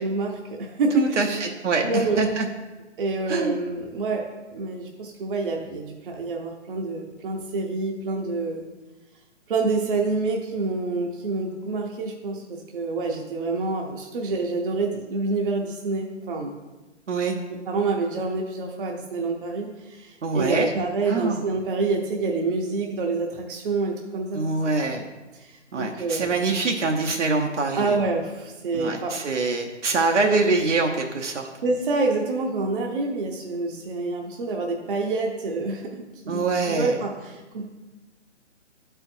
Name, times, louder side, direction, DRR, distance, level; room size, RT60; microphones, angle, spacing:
voice 1, 0.0-1.2 1.8-2.4 3.0-8.6 9.5-16.6 17.7-24.4 24.9-25.1 25.4-26.4 27.8-29.2 31.6-37.6, right 3 dB, 45° right, 1 dB, 0.8 m, -27 dB
voice 2, 0.9-2.5 3.3-3.6 17.1-17.4 20.2-20.7 21.1-21.4 24.3-25.0 25.7-28.0 28.7-31.5 36.3-37.0, right 3 dB, 75° right, 2 dB, 0.8 m, -24 dB
11.0 x 4.5 x 2.6 m, 1.1 s
hypercardioid pair, 145°, 36 cm